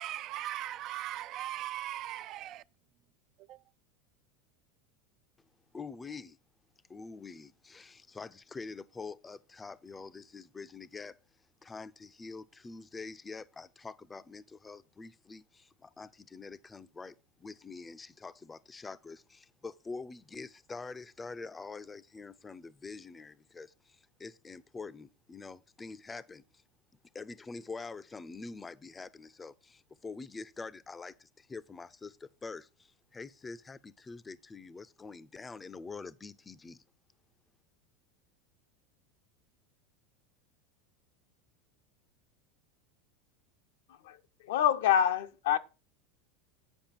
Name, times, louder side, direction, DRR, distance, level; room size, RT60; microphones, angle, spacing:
voice 1, 0.0-2.6 3.4-3.6, right 13 dB, 45° right, 0.3 m, -39 dB
voice 2, 5.7-6.4 6.9-11.2 11.6-26.6 27.1-36.8, left 4 dB, 15° left, 0.5 m, -45 dB
voice 3, 43.9-45.6, left 9 dB, 80° left, 0.8 m, -27 dB
8.9 x 5.1 x 5.8 m
supercardioid pair, 125°, 0 cm